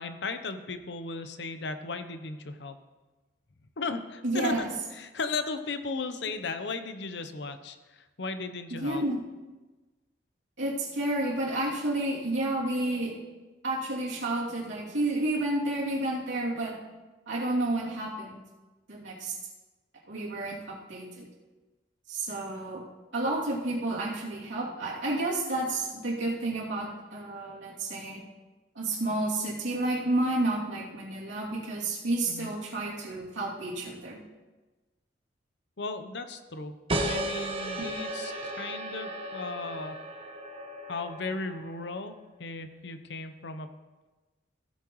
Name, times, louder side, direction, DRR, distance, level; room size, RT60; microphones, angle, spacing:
voice 1, 0.0-2.8 3.8-4.7 4.9-9.0 32.3-32.5 35.8-36.8 37.1-40.0 40.9-43.7, left 3 dB, 65° left, 9 dB, 0.8 m, -36 dB
voice 2, 4.2-4.7 8.7-9.2 10.6-13.2 13.6-16.8 17.3-18.4 18.9-19.4 20.1-21.3 22.1-22.9 23.1-28.2 28.7-34.2 37.8-37.9, right 2 dB, 80° right, -6 dB, 2.8 m, -30 dB
sound 1, 36.9-42.1, right 1 dB, 30° right, 0.9 m, -35 dB
15.5 x 8.6 x 3.1 m, 1.2 s
head